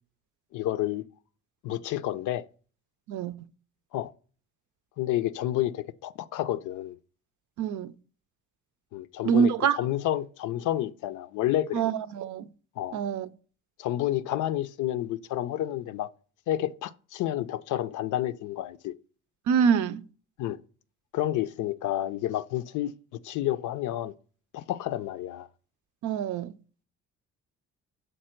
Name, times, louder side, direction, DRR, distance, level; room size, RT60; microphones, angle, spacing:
voice 1, 0.5-1.1 1.6-2.4 3.9-4.1 5.0-7.0 8.9-11.8 12.8-12.9 13.8-16.1 16.5-18.9 20.4-20.6 21.1-22.9 23.2-24.1 24.5-25.5, left 13 dB, 80° left, 0.5 m, -30 dB
voice 2, 3.1-3.5 7.6-7.9 9.2-9.8 11.7-12.5 12.9-13.3 19.5-20.1 26.0-26.5, right 7 dB, 75° right, 0.5 m, -25 dB
6.6 x 4.3 x 4.4 m
cardioid pair, 90°, 30 cm